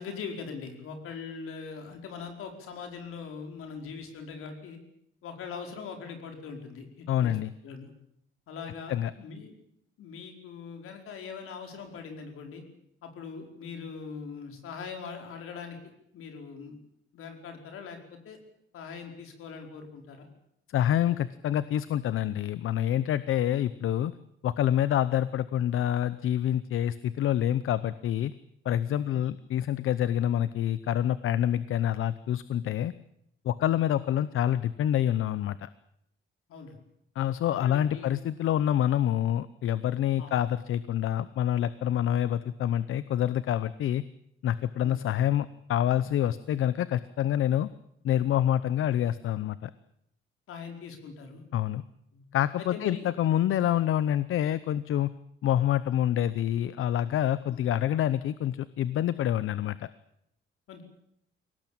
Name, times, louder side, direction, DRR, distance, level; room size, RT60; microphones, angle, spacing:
voice 1, 0.0-4.8 5.2-7.4 7.6-7.9 8.5-9.5 10.0-12.6 13.0-15.8 16.1-16.8 17.1-18.4 18.7-20.3 29.1-29.3 33.6-33.7 36.5-36.8 37.4-38.1 40.2-40.3 44.8-45.0 50.5-51.4 52.1-52.2 52.6-53.1 57.5-57.6 60.7-60.8, left 5 dB, 90° left, 4 dB, 5.0 m, -41 dB
voice 2, 7.1-7.5 8.9-9.1 20.7-24.1 24.4-28.3 28.6-32.9 33.4-35.7 37.2-44.0 44.4-47.7 48.0-49.7 51.5-51.8 52.3-55.1 55.4-59.9, left 11 dB, 75° left, 15 dB, 0.8 m, -27 dB
23.5 x 18.5 x 8.9 m, 0.77 s
cardioid pair, 155°, 21 cm